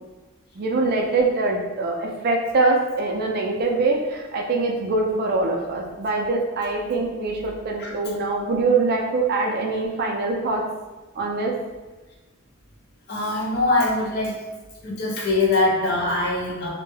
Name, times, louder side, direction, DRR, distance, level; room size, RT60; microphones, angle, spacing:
voice 1, 0.5-10.6 11.2-11.6, right 3 dB, 45° right, 0 dB, 0.4 m, -23 dB
voice 2, 13.1-14.4 14.8-16.7, left 2 dB, 50° left, -2 dB, 0.5 m, -22 dB
2.2 x 2.1 x 3.1 m, 1.2 s
head